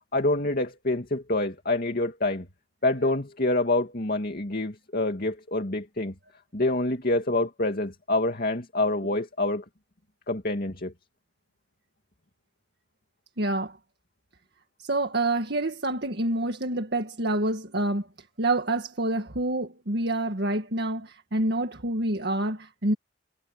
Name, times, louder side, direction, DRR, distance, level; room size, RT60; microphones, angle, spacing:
voice 1, 0.1-2.5 2.8-6.1 6.5-9.6 10.3-10.9, left 2 dB, 55° left, 2.5 m, -26 dB
voice 2, 13.4-13.8 14.8-18.1 18.4-22.9, right 2 dB, 65° right, 1.8 m, -27 dB
head